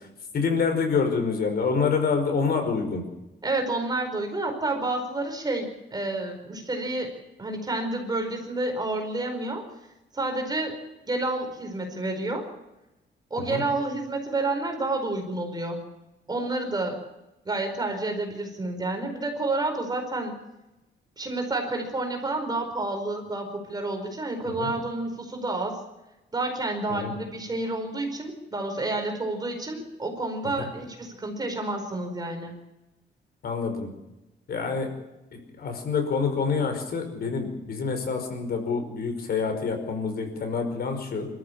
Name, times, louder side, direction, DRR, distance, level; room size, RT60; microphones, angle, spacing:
voice 1, 0.3-3.0 13.5-13.6 24.4-24.7 26.9-27.1 30.6-30.7 33.4-33.9 34.5-34.9 35.3-41.3, left 5 dB, 60° left, 5 dB, 5.4 m, -27 dB
voice 2, 3.4-7.1 7.4-9.6 10.1-10.8 11.1-12.5 13.3-15.8 16.3-17.0 17.4-20.3 21.2-25.8 26.3-32.5, right 2 dB, 20° right, 4 dB, 4.8 m, -29 dB
27.0 x 14.0 x 8.6 m, 0.97 s
wide cardioid pair, 160°, 19 cm